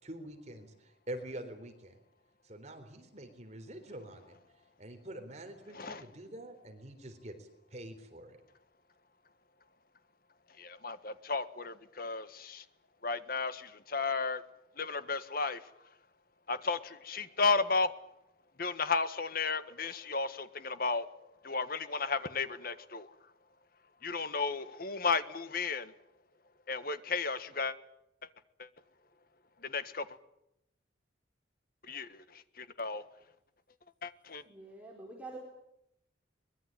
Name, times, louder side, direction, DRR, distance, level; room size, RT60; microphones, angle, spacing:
voice 1, 0.0-2.0 2.4-4.4 4.8-8.4, right 1 dB, 35° right, 6 dB, 3.8 m, -46 dB
voice 2, 5.7-6.0 10.6-12.6 13.0-14.4 14.8-15.7 16.5-17.9 18.6-21.1 21.4-23.1 24.0-25.9 26.7-27.7 28.6-28.7 29.6-30.1 31.9-33.0 34.0-34.4, left 4 dB, 45° left, 12 dB, 1.5 m, -34 dB
voice 3, 34.4-35.4, right 2 dB, 5° right, -2 dB, 4.2 m, -46 dB
23.5 x 21.5 x 9.0 m, 0.82 s
head